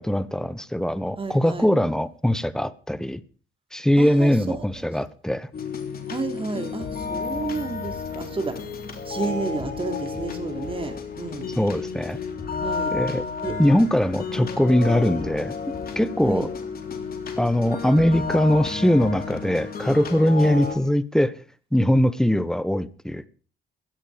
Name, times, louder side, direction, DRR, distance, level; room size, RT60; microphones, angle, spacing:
voice 1, 0.0-3.2 3.7-5.5 11.6-12.2 12.9-13.2 13.6-15.6 16.0-16.5 17.4-21.4 21.7-23.3, equal, 5° left, 1.1 m, -21 dB
voice 2, 1.2-1.7 4.0-4.9 6.1-8.7 9.0-11.5 12.6-13.0 13.4-13.6 16.2-16.5, right 3 dB, 25° right, 3.3 m, -31 dB
sound 1, 5.5-20.8, left 5 dB, 50° left, 3.6 m, -32 dB
16.5 x 12.5 x 5.1 m
cardioid pair, 90°, 20 cm